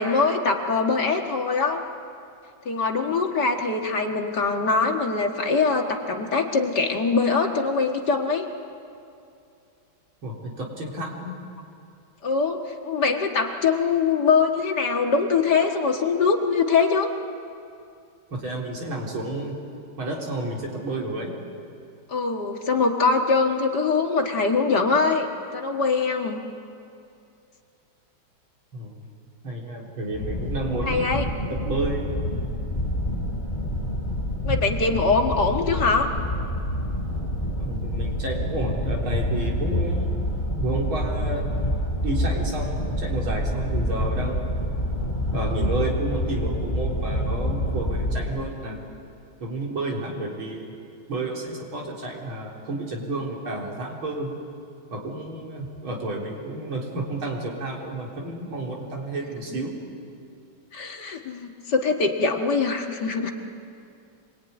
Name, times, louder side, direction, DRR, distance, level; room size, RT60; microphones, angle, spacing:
voice 1, 0.0-1.8 2.7-8.5 12.2-17.1 22.1-25.3 25.5-26.4 30.8-31.2 34.4-36.1 60.7-63.3, left 4 dB, 55° left, 3 dB, 2.1 m, -23 dB
voice 2, 10.2-11.4 18.3-19.6 20.0-21.4 28.7-29.0 29.4-31.0 31.5-32.1 34.9-35.0 37.6-40.1 40.5-41.5 42.0-44.5 45.3-48.8 49.4-50.7 51.1-54.3 54.9-59.7, right 2 dB, 70° right, -2 dB, 4.6 m, -31 dB
sound 1, 30.1-48.3, equal, 15° left, 7.0 m, -27 dB
26.0 x 22.5 x 9.7 m, 2.5 s
omnidirectional pair, 2.3 m